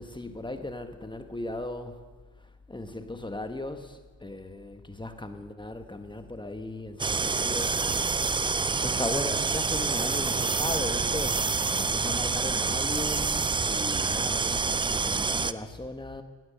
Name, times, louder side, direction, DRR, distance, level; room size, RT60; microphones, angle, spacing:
voice 1, 0.0-2.0 2.4-8.2 8.8-16.2, left 2 dB, 10° left, 1.3 m, -37 dB
sound 1, 7.0-15.5, right 4 dB, 10° right, 0.4 m, -27 dB
17.5 x 9.5 x 6.8 m
hypercardioid pair, 70°, 46 cm